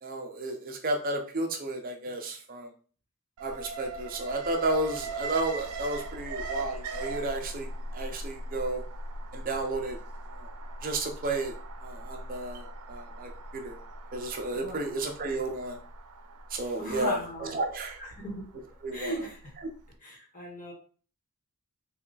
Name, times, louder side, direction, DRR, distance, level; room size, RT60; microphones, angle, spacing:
voice 1, 0.0-2.7 3.4-8.8 9.3-10.0 10.3-10.5 10.8-11.5 11.8-13.8 14.1-15.8 16.5-18.0 18.8-19.3 19.6-19.7, right 2 dB, 40° right, 3 dB, 0.7 m, -32 dB
Alarm, 3.4-19.5 19.8-19.9, right 2 dB, 90° right, 0.5 m, -40 dB
voice 2, 16.8-17.5 18.2-18.4 18.9-19.4 20.0-20.7, equal, 35° left, -2 dB, 1.2 m, -36 dB
3.4 x 2.4 x 3.9 m, 0.40 s
head